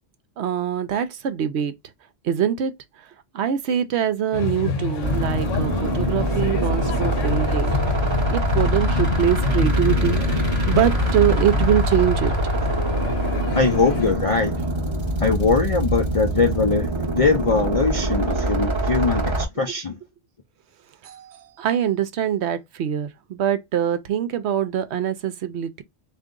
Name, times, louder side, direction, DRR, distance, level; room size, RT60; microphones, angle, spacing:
voice 1, 0.4-1.7 2.2-2.7 3.3-7.8 8.3-12.3 21.0-25.8, right 9 dB, 65° right, 0.8 m, -24 dB
sound 1, 4.3-14.1, left 5 dB, 80° left, 1.0 m, -28 dB
sound 2, 5.0-19.5, right 1 dB, 25° right, 0.8 m, -23 dB
voice 2, 13.5-14.5 15.2-19.9, left 4 dB, 50° left, 0.4 m, -21 dB
3.8 x 2.6 x 3.6 m
omnidirectional pair, 1.3 m